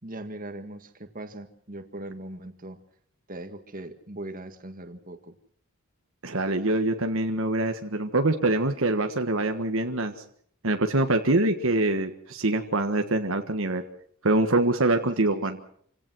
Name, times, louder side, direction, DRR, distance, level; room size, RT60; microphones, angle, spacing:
voice 1, 0.0-2.8 3.3-5.4 15.4-15.6, right 1 dB, 40° right, 7 dB, 1.9 m, -40 dB
voice 2, 6.2-10.1 10.6-13.8 14.2-15.6, right 2 dB, 65° right, 6 dB, 1.5 m, -24 dB
27.5 x 17.0 x 6.3 m, 0.63 s
head